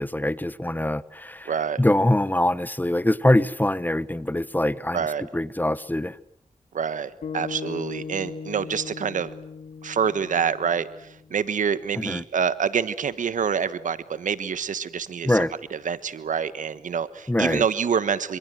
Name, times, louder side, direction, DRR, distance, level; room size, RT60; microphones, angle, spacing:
voice 1, 0.0-1.5 1.8-6.2 11.9-12.2 15.2-15.5 17.3-17.6, left 1 dB, 15° left, 1.2 m, -23 dB
voice 2, 1.5-1.8 4.9-5.2 6.7-9.3 9.8-15.4 15.7-18.4, right 7 dB, 90° right, 1.3 m, -26 dB
sound 1, 7.2-11.6, left 6 dB, 90° left, 2.1 m, -38 dB
28.5 x 26.0 x 7.7 m
cardioid pair, 50°, 13 cm